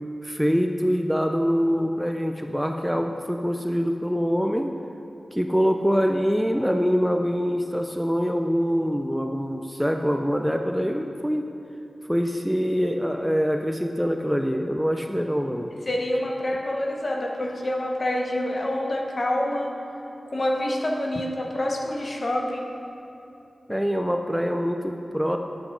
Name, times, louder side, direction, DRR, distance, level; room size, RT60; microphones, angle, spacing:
voice 1, 0.2-4.7 5.3-11.5 12.1-15.7 23.7-25.4, equal, ahead, 4 dB, 0.4 m, -24 dB
voice 2, 15.9-19.7 20.3-22.7, left 1 dB, 50° left, 1 dB, 1.1 m, -27 dB
9.7 x 8.2 x 3.8 m, 2.9 s
wide cardioid pair, 60°, 0 cm